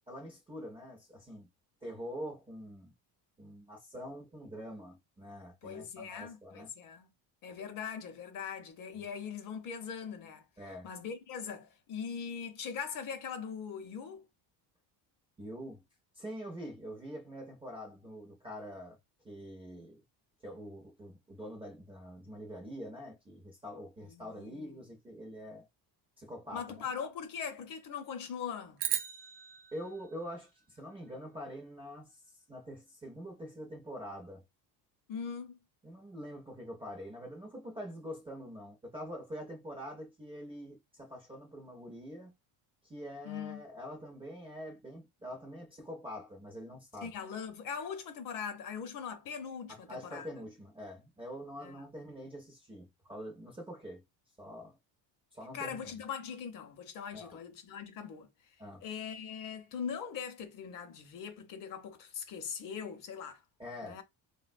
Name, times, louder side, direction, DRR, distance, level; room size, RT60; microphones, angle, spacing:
voice 1, 0.1-1.5 1.8-2.9 3.4-6.7 8.9-9.0 10.6-10.9 15.4-15.8 16.1-19.0 19.2-20.0 20.4-25.7 26.2-26.9 29.7-32.2 32.5-34.4 35.8-42.3 42.8-47.2 49.7-54.0 54.4-54.8 55.3-56.0 57.1-57.4 58.6-58.8 63.6-64.0, equal, 15° right, 0.4 m, -45 dB
voice 2, 5.6-7.1 7.4-10.5 10.8-14.2 24.0-24.8 26.5-28.8 35.1-35.6 43.2-43.6 47.0-50.3 51.6-51.9 55.5-58.3 58.8-63.4 63.8-64.0, left 7 dB, 50° left, 0.6 m, -41 dB
sound 1, 28.8-31.2, right 11 dB, 65° right, 0.5 m, -38 dB
3.5 x 2.2 x 2.4 m
cardioid pair, 170°, 45 cm